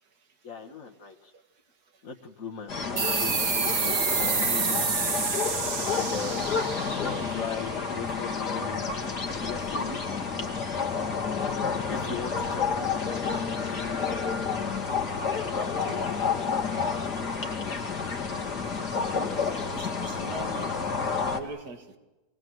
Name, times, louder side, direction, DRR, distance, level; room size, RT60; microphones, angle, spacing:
voice 1, 0.4-1.3 2.0-4.9 5.8-6.5 6.9-9.0 9.3-10.0 11.9-12.9, left 5 dB, 55° left, -2 dB, 2.0 m, -38 dB
sound 1, 2.7-21.4, left 5 dB, 85° left, 3.0 m, -30 dB
sound 2, 3.0-8.1, right 5 dB, 40° right, 1.3 m, -29 dB
voice 2, 19.7-20.7 21.2-21.8, right 3 dB, 70° right, 6 dB, 2.7 m, -40 dB
27.0 x 19.5 x 7.9 m, 1.1 s
omnidirectional pair, 1.7 m